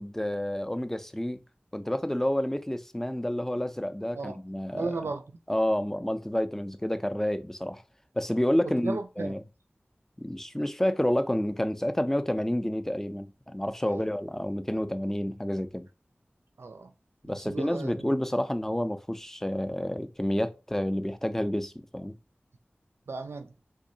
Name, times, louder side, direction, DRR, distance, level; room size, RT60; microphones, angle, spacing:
voice 1, 0.0-1.4 1.7-4.9 5.5-7.8 8.1-9.4 10.2-15.9 17.2-22.1, left 1 dB, 10° left, 0.4 m, -29 dB
voice 2, 4.7-5.4 8.6-9.4 13.9-14.1 16.6-16.9 17.3-18.1 23.1-23.5, right 3 dB, 90° right, 0.3 m, -36 dB
3.6 x 3.1 x 2.6 m
wide cardioid pair, 40°, 4 cm